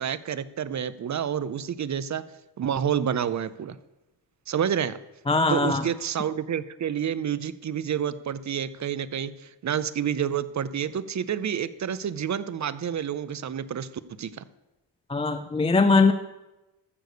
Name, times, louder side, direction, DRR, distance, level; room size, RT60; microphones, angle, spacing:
voice 1, 0.0-2.2 2.6-3.8 4.5-5.0 5.5-13.9 14.2-14.4, right 8 dB, 40° right, 15 dB, 0.6 m, -29 dB
voice 2, 5.3-5.9 15.1-16.1, left 3 dB, 15° left, 10 dB, 0.4 m, -21 dB
14.5 x 6.5 x 6.7 m, 1.0 s
wide cardioid pair, 135°, 44 cm